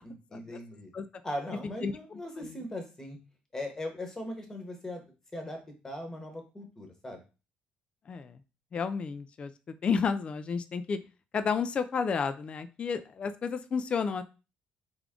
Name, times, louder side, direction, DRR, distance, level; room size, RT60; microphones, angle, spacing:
voice 1, 0.0-0.9 1.2-3.2 3.5-5.0 5.3-5.6 5.8-7.2, left 1 dB, 15° left, 3 dB, 1.1 m, -39 dB
voice 2, 1.8-2.6 8.1-8.4 8.7-11.0 11.3-14.2, left 5 dB, 30° left, 10 dB, 0.3 m, -32 dB
3.5 x 3.5 x 3.7 m, 0.31 s
cardioid pair, 140°, 4 cm